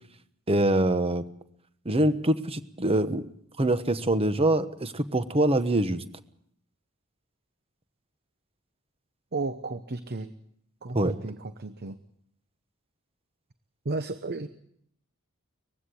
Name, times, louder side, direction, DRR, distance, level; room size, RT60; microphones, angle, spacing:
voice 1, 0.5-1.2 1.8-3.3 3.6-6.0 10.9-11.1, right 1 dB, 25° right, 11 dB, 1.1 m, -24 dB
voice 2, 9.3-10.3 10.8-12.0 13.8-14.5, right 3 dB, 50° right, 11 dB, 0.9 m, -33 dB
20.5 x 15.5 x 8.5 m, 0.70 s
head